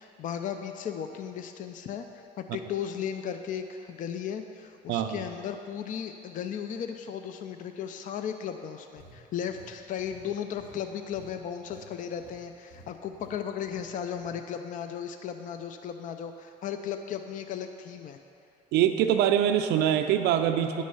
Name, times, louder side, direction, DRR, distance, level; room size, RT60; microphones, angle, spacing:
voice 1, 0.0-18.2, left 8 dB, 50° left, 7 dB, 0.5 m, -36 dB
voice 2, 4.9-5.2 18.7-20.8, right 10 dB, 80° right, 7 dB, 0.5 m, -24 dB
sound 1, 8.9-11.9 12.1-12.4 12.7-12.9 13.1-13.4 13.7-14.4, left 1 dB, 70° left, 1.8 m, -53 dB
9.6 x 6.3 x 5.6 m, 2.8 s
cardioid pair, 110°, 17 cm